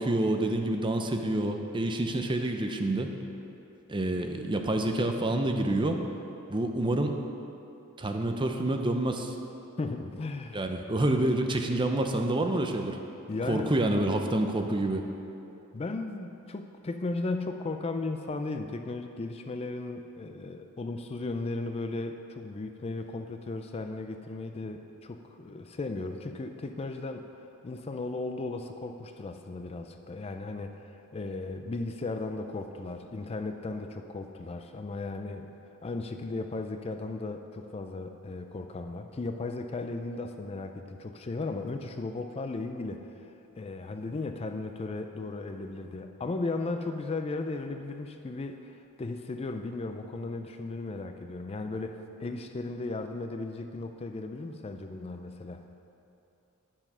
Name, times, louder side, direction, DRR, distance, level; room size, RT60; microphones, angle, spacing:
voice 1, 0.0-3.1 3.9-6.0 6.5-7.2 8.0-9.3 10.5-13.0 13.5-15.0, right 1 dB, 20° right, 4 dB, 0.6 m, -28 dB
voice 2, 9.8-10.7 13.3-13.8 15.7-27.3 27.6-35.5 35.8-55.6, left 3 dB, 25° left, 6 dB, 0.4 m, -36 dB
9.9 x 7.2 x 5.5 m, 2.8 s
head